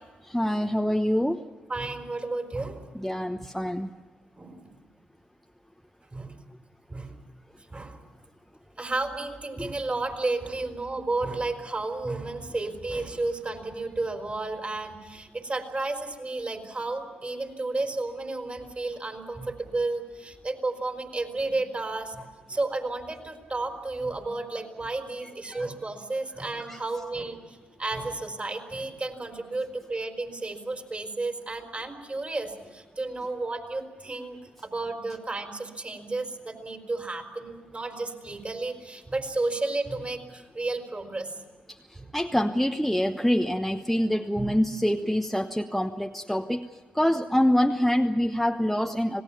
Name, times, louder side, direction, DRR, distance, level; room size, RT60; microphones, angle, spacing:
voice 1, 0.2-1.4 2.9-3.9 9.6-9.7 25.4-25.6 26.7-26.8 41.7-46.7 46.9-49.2, equal, ahead, 5 dB, 1.0 m, -25 dB
voice 2, 1.7-2.8 4.3-4.7 6.1-6.4 6.9-7.1 7.7-8.0 8.8-41.4 42.0-42.1 44.4-44.6, right 2 dB, 30° right, 6 dB, 4.1 m, -32 dB
26.5 x 18.0 x 7.1 m, 1.4 s
hypercardioid pair, 45°, 5 cm